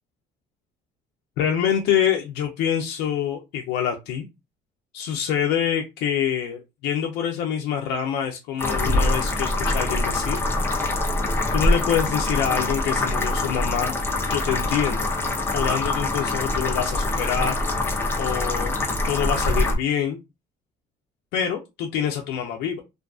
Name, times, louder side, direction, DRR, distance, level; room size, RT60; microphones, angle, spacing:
voice 1, 1.4-4.3 4.9-10.4 10.8-11.0 11.5-13.9 14.3-15.1 15.5-17.6 18.2-18.8 19.1-20.2 21.3-22.8, left 9 dB, 85° left, 2 dB, 0.4 m, -26 dB
sound 1, 8.6-19.7, left 2 dB, 15° left, 0.6 m, -24 dB
2.5 x 2.3 x 2.3 m, 0.24 s
cardioid pair, 110°, 17 cm